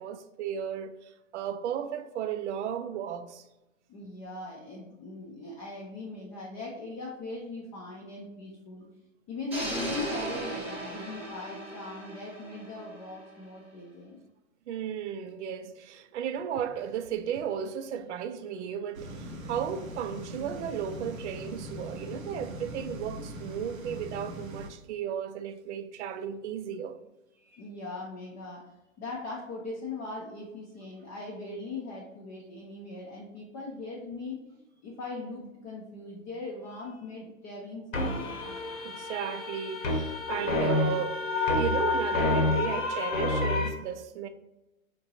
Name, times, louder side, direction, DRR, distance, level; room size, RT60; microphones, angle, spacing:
voice 1, 0.0-3.4 14.7-27.0 38.8-44.3, right 8 dB, 60° right, 0.5 m, -34 dB
voice 2, 3.9-8.8 9.3-14.2 27.4-38.4, left 3 dB, 20° left, 0.5 m, -40 dB
sound 1, 9.5-13.5, right 1 dB, 5° right, 1.0 m, -37 dB
sound 2, 18.9-24.7, right 1 dB, 85° right, 0.8 m, -41 dB
sound 3, 37.9-43.7, left 3 dB, 75° left, 1.0 m, -28 dB
4.4 x 2.6 x 2.8 m
figure-of-eight pair, 110°, 40 cm